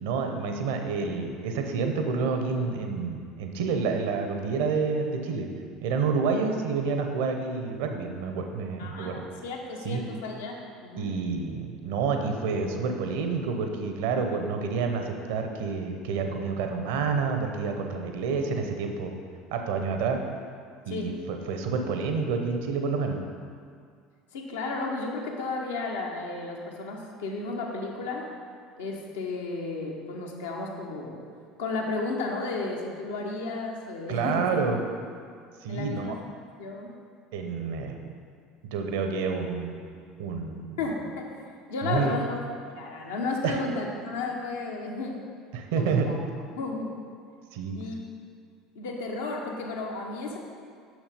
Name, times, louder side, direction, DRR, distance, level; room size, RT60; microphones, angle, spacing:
voice 1, 0.0-5.5 5.8-9.3 9.8-10.0 11.0-19.2 19.5-20.2 20.9-23.2 34.1-34.8 35.6-36.0 37.3-38.0 38.7-39.8 40.2-40.8 41.8-42.1 43.4-43.6 45.5-46.1 47.5-47.8, right 5 dB, 70° right, 4 dB, 0.8 m, -28 dB
voice 2, 8.8-11.1 20.9-21.2 24.3-28.3 28.8-31.2 31.6-34.5 35.7-36.1 36.6-36.9 40.8-42.4 42.7-45.2 45.8-46.2 46.5-47.0 47.7-48.0 48.7-50.4, left 3 dB, 75° left, 0 dB, 1.1 m, -33 dB
6.4 x 6.3 x 5.1 m, 2.2 s
hypercardioid pair, 70°, 0 cm